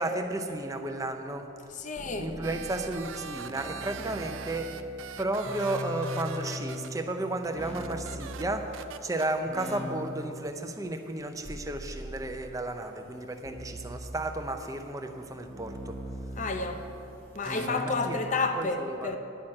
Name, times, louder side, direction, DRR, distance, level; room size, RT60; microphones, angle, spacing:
voice 1, 0.0-1.5 2.2-4.7 5.2-8.8 9.0-16.0 17.5-18.2 18.5-19.2, right 2 dB, 15° right, 0.6 m, -33 dB
voice 2, 1.8-2.3 16.4-16.8 17.3-19.2, left 3 dB, 35° left, 0.7 m, -30 dB
sound 1, 2.0-9.0 9.5-10.6 11.4-12.6 13.5-14.7 15.5-18.3, left 1 dB, 5° left, 0.9 m, -41 dB
sound 2, 2.4-6.9 7.4-7.5 7.7-8.4 8.7-9.3 13.6-13.7 17.3-17.7, right 8 dB, 75° right, 0.4 m, -42 dB
10.5 x 6.2 x 8.7 m
head